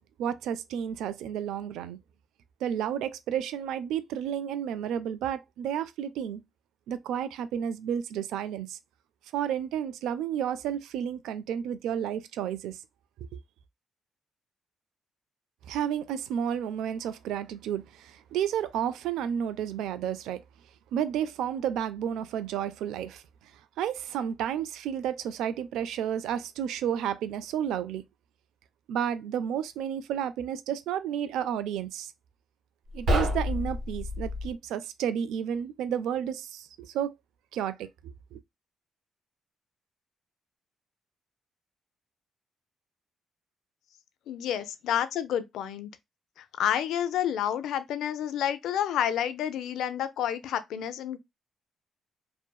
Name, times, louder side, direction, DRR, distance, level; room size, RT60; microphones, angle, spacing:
voice 1, 0.2-2.0 2.6-6.4 6.9-8.8 9.3-12.8 13.3-13.4 15.7-20.4 20.9-23.2 23.8-28.0 28.9-32.1 32.9-37.1 37.5-38.4, right 9 dB, 85° right, 0.3 m, -31 dB
sound 1, 32.9-34.5, left 1 dB, 65° right, 1.2 m, -28 dB
voice 2, 44.3-45.9 46.4-51.2, left 10 dB, 80° left, 0.4 m, -29 dB
2.6 x 2.5 x 2.2 m
cardioid pair, 90°, 0 cm